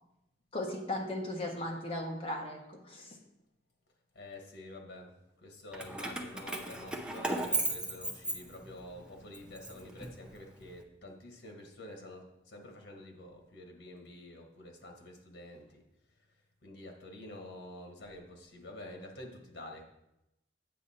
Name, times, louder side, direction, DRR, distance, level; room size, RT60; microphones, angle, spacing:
voice 1, 0.5-3.2, left 1 dB, 30° left, -1 dB, 1.4 m, -37 dB
voice 2, 4.1-5.1 5.4-15.8 16.6-19.8, left 1 dB, 85° left, 3 dB, 1.4 m, -48 dB
Keys jangling, 5.7-8.9 9.3-10.6, right 2 dB, 5° right, 0.6 m, -36 dB
8.4 x 6.2 x 4.3 m, 0.89 s
head